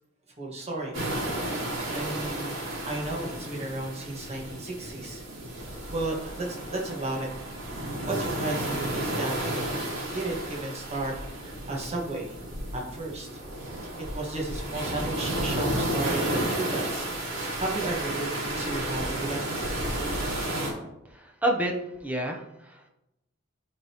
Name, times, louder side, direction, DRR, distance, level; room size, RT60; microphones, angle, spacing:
voice 1, 0.4-1.0 1.9-2.5 2.8-5.2 5.5-7.3 8.0-9.6 10.1-12.4 12.7-13.4 13.7-19.5, right 2 dB, 35° right, -1 dB, 1.4 m, -34 dB
sound 1, 0.9-20.7, right 1 dB, 75° right, 2.2 m, -32 dB
voice 2, 21.1-21.8 22.0-22.9, right 1 dB, 10° right, 1 dB, 0.7 m, -29 dB
10.5 x 3.9 x 2.9 m, 0.88 s
head